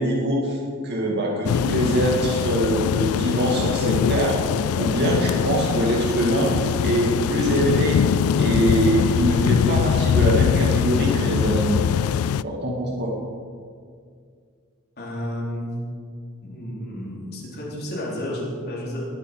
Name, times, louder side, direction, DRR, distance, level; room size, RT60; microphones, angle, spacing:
voice 1, 0.0-4.4 4.7-8.0 8.4-11.8 12.4-13.1, right 1 dB, 50° right, -1 dB, 2.2 m, -23 dB
sound 1, 1.5-12.4, left 7 dB, 85° left, 0.3 m, -22 dB
voice 2, 15.0-15.7 16.4-19.1, left 1 dB, 50° left, -5 dB, 4.2 m, -31 dB
19.5 x 8.4 x 5.7 m, 2.1 s
head